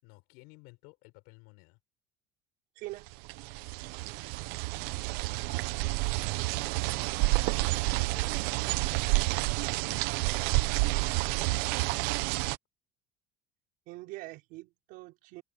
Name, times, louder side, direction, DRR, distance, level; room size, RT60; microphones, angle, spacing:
voice 1, 0.0-1.8 7.3-9.1 9.7-10.0 10.5-11.5, left 27 dB, 90° left, 6.6 m, -55 dB
voice 2, 2.8-3.1 13.9-15.4, right 20 dB, 65° right, 5.7 m, -43 dB
sound 1, 3.1-12.6, right 23 dB, 80° right, 0.7 m, -29 dB
open air
cardioid pair, 170°, 16 cm